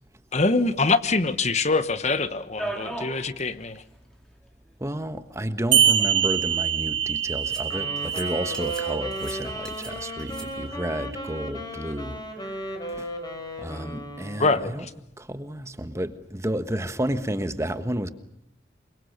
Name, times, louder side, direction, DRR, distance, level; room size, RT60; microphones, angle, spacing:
voice 1, 0.3-3.8 14.4-14.9, left 3 dB, 40° left, 1.2 m, -24 dB
sound 1, 2.6-3.2 3.6-3.7 3.9-4.0 5.1-5.2 5.9-6.5 7.5-7.7 8.0-8.2 8.5-8.9 9.1-9.9 10.2-10.5, right 1 dB, 5° left, 4.5 m, -37 dB
voice 2, 4.8-12.2 12.5-12.6 12.9-13.1 13.6-14.8 15.2-18.1, right 1 dB, 15° right, 1.4 m, -31 dB
sound 2, 5.7-10.7, right 9 dB, 85° right, 1.3 m, -25 dB
Wind instrument woodwind instrument, 7.6-14.9, equal, 25° left, 5.2 m, -35 dB
28.5 x 23.5 x 6.6 m
head